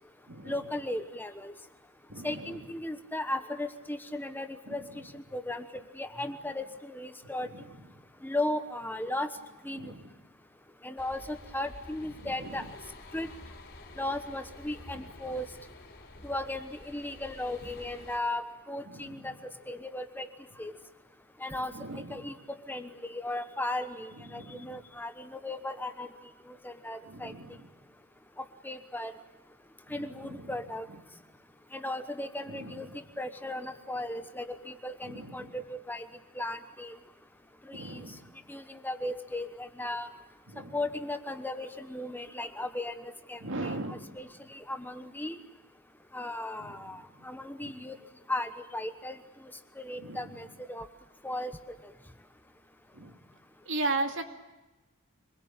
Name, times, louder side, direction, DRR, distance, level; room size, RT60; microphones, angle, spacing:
voice 1, 0.4-1.5 2.2-4.8 5.1-7.5 8.2-9.3 9.6-9.9 10.8-12.7 13.1-13.3 14.0-15.5 16.2-19.3 19.7-20.3 20.6-20.7 21.4-21.7 22.1-26.1 26.5-27.3 28.4-29.1 29.9-30.9 31.7-32.9 33.2-36.0 36.3-36.9 37.7-38.0 38.5-40.1 40.7-45.4 46.1-48.0 48.3-49.2 49.8-50.9 51.2-51.6, left 1 dB, 10° left, 8 dB, 1.1 m, -36 dB
voice 2, 2.1-2.5 4.7-5.1 7.5-7.8 9.8-10.1 12.2-12.7 14.9-15.0 19.0-19.2 21.7-22.3 24.3-24.8 27.1-27.6 29.9-30.5 32.5-32.9 35.0-35.5 37.7-38.2 40.5-40.8 43.4-44.0 46.6-46.9 47.6-47.7 50.0-50.2 52.9-53.1 53.7-54.2, right 2 dB, 60° right, 5 dB, 2.5 m, -38 dB
sound 1, 11.0-18.2, left 2 dB, 45° left, 3.6 m, -49 dB
26.0 x 21.5 x 8.8 m, 1.1 s
head